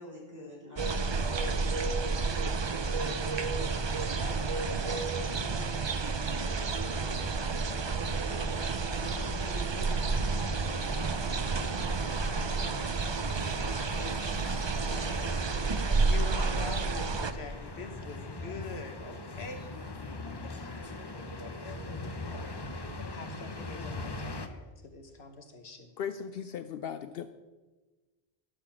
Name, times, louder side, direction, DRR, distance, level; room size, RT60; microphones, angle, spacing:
voice 1, 0.0-3.6 4.0-7.3 7.6-11.9, equal, 15° right, -4 dB, 3.8 m, -47 dB
sound 1, 0.8-17.3, right 4 dB, 35° right, 0.5 m, -30 dB
sound 2, 8.0-23.2, right 3 dB, 60° right, 4.0 m, -54 dB
sound 3, 9.7-24.5, left 2 dB, 25° left, 0.7 m, -41 dB
voice 2, 15.9-19.7 20.4-22.8 23.1-25.9, left 3 dB, 90° left, 6 dB, 1.5 m, -44 dB
voice 3, 26.0-27.3, left 8 dB, 70° left, 10 dB, 0.7 m, -37 dB
12.5 x 6.8 x 7.2 m, 1.3 s
omnidirectional pair, 1.0 m